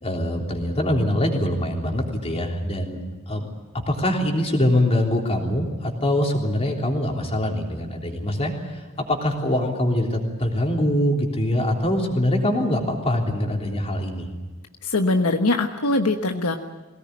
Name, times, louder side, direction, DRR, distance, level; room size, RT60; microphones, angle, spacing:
voice 1, 0.0-3.0 3.3-3.5 3.9-14.3, left 1 dB, 30° left, 1 dB, 3.5 m, -23 dB
voice 2, 14.8-16.6, left 2 dB, 80° left, 5 dB, 1.2 m, -22 dB
22.0 x 18.0 x 9.6 m, 1.2 s
head